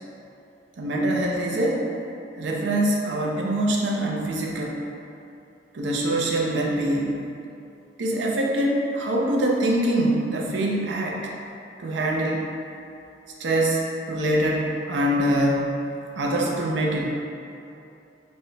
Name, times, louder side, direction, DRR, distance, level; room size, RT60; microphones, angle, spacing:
voice 1, 0.8-1.8 2.4-4.8 5.7-7.2 8.0-11.3 11.8-12.5 13.4-13.8 14.1-15.8 16.2-17.1, right 1 dB, 75° right, -2 dB, 0.5 m, -24 dB
4.4 x 2.1 x 3.2 m, 2.7 s
head